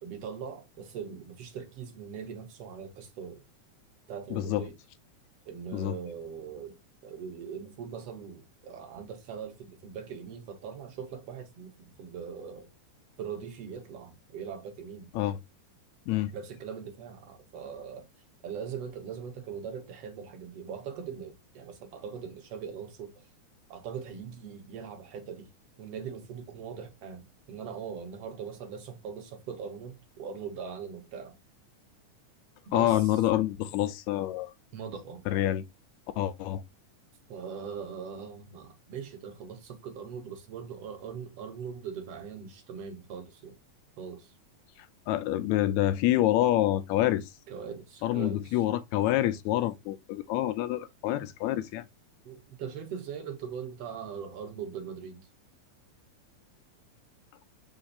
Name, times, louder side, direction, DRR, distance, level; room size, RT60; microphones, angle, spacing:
voice 1, 0.0-3.4 4.1-4.8 5.5-6.8 7.0-12.7 13.2-15.1 16.3-18.1 18.4-23.2 23.7-25.5 25.8-31.3 32.7-33.1 34.7-35.2 37.3-43.6 44.0-44.3 47.5-48.6 52.3-55.3, right 7 dB, 65° right, 1.9 m, -41 dB
voice 2, 4.3-4.7 5.7-6.0 15.2-15.4 16.1-16.3 32.7-34.5 35.3-35.6 36.2-36.6 45.1-47.3 48.0-51.9, left 14 dB, 80° left, 1.8 m, -27 dB
5.2 x 2.5 x 3.9 m
omnidirectional pair, 3.4 m